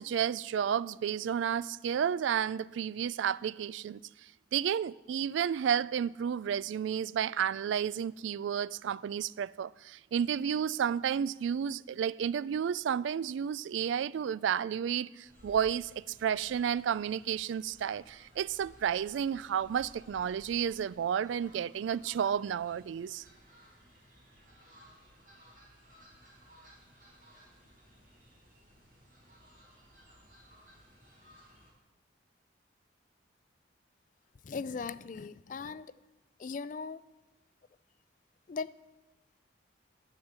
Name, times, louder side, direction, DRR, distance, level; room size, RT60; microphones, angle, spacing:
voice 1, 0.0-4.0 4.5-23.2, right 8 dB, 75° right, 0.3 m, -31 dB
Fowl, 15.2-31.7, equal, 45° right, 4.3 m, -59 dB
voice 2, 34.4-35.9 36.4-37.0 38.5-38.7, left 5 dB, 40° left, 0.3 m, -38 dB
10.5 x 7.1 x 8.0 m
head